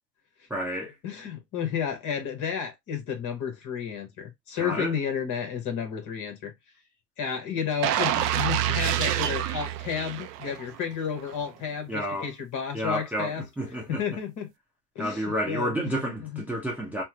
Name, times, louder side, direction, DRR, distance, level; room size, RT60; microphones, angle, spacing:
voice 1, 0.5-0.9 4.6-4.9 11.9-12.3 12.7-14.0 15.0-17.0, equal, 5° right, 0.8 m, -30 dB
voice 2, 1.0-6.5 7.2-13.4 13.9-14.5 14.9-15.7 16.2-16.4, left 7 dB, 40° left, 1.2 m, -32 dB
sound 1, 7.8-10.8 11.2-11.3, right 12 dB, 75° right, 0.6 m, -27 dB
3.4 x 2.0 x 2.9 m
hypercardioid pair, 105°, 48 cm